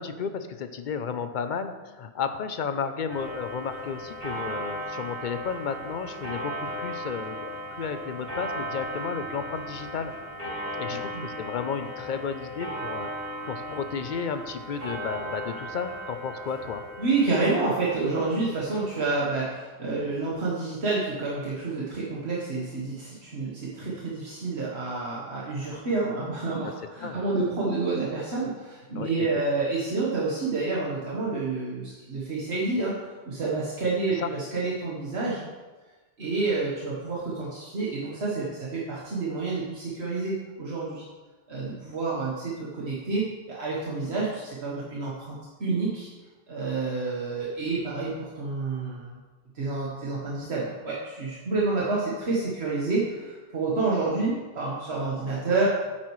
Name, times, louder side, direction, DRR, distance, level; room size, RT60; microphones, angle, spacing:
voice 1, 0.0-10.1 10.7-16.9 27.0-27.2 29.0-29.3 34.2-34.3, left 6 dB, 55° left, 9 dB, 0.7 m, -33 dB
Clock, 3.1-19.2, equal, 60° right, 3.4 m, -37 dB
voice 2, 10.9-11.3 17.0-32.9 33.2-35.5 36.2-41.0 41.5-46.1 46.5-49.2 49.5-55.7, right 3 dB, 80° right, -6 dB, 1.6 m, -29 dB
9.9 x 8.6 x 3.1 m, 1.3 s
omnidirectional pair, 1.1 m